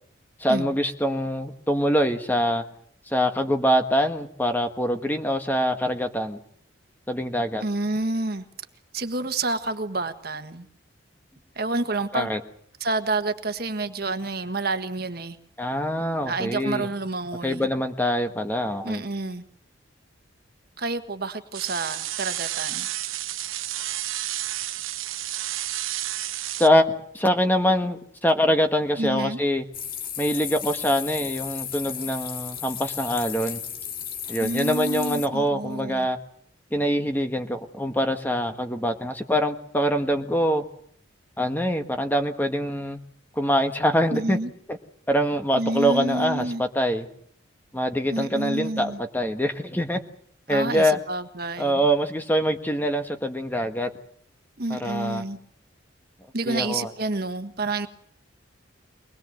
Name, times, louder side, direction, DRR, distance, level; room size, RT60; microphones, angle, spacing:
voice 1, 0.4-2.6 3.1-6.4 7.1-7.6 12.1-12.4 15.6-16.9 17.4-19.0 26.6-29.6 30.2-33.6 34.3-36.2 36.7-40.6 41.4-43.0 43.4-44.4 44.7-44.8 45.1-47.1 47.7-50.0 50.5-51.0 51.6-53.9 54.7-55.2 56.5-56.9, equal, 10° left, 1.5 m, -24 dB
voice 2, 7.6-8.4 8.9-10.7 11.5-12.3 12.8-15.4 16.3-17.7 18.8-19.4 20.8-22.9 29.0-29.4 34.4-36.1 44.1-44.5 45.5-46.6 48.1-49.0 50.5-51.8 54.6-55.4 56.3-57.9, right 2 dB, 50° right, 1.5 m, -29 dB
sound 1, 21.5-26.7, right 13 dB, 85° right, 1.1 m, -31 dB
sound 2, 29.7-35.3, left 8 dB, 45° left, 2.0 m, -34 dB
23.5 x 20.5 x 7.9 m
head